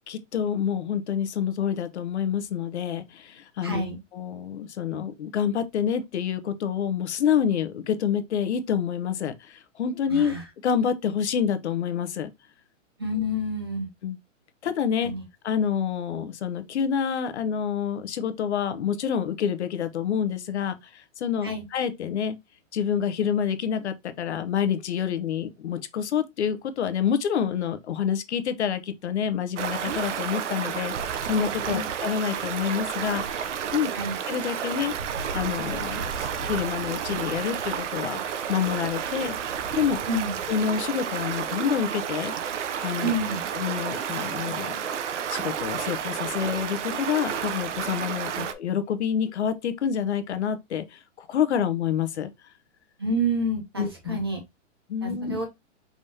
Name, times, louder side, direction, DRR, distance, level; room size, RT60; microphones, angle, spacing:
voice 1, 0.1-3.8 4.1-10.3 10.6-12.3 14.0-14.2 14.6-15.1 15.4-22.4 22.7-33.9 34.3-34.9 35.3-36.1 36.4-39.4 39.8-40.0 40.5-43.1 43.5-44.8 45.3-52.3 53.8-54.2 54.9-55.4, left 8 dB, 65° left, 0.8 m, -27 dB
voice 2, 3.6-4.0 10.1-10.4 13.0-13.9 15.0-15.2 21.4-21.6 31.6-31.9 33.9-34.2 40.1-40.3 43.0-43.4 48.3-48.4 53.0-54.4 55.0-55.5, right 1 dB, 20° right, 0.4 m, -28 dB
Stream, 29.6-48.5, right 8 dB, 70° right, 0.8 m, -31 dB
5.1 x 3.5 x 2.7 m
hypercardioid pair, 180°, 37 cm